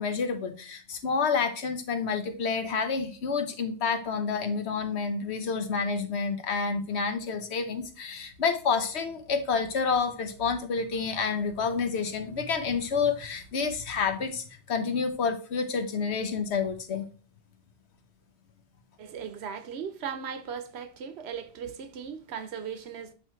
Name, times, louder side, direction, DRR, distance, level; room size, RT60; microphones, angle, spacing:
voice 1, 0.0-17.0, left 5 dB, 80° left, 1.2 m, -29 dB
voice 2, 19.0-23.1, right 7 dB, 75° right, 1.0 m, -37 dB
8.3 x 3.1 x 4.5 m
omnidirectional pair, 1.1 m